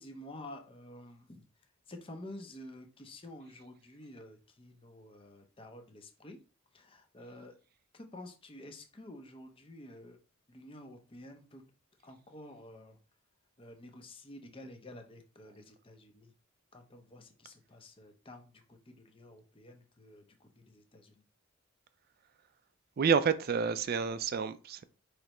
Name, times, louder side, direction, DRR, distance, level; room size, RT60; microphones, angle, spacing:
voice 1, 0.0-1.4 1.9-6.4 6.7-7.6 7.9-10.2 10.5-11.6 12.0-13.0 13.6-16.3 16.7-21.2, left 1 dB, 25° left, 0.7 m, -50 dB
voice 2, 23.0-24.8, right 6 dB, 45° right, 0.4 m, -29 dB
5.0 x 3.2 x 3.0 m
head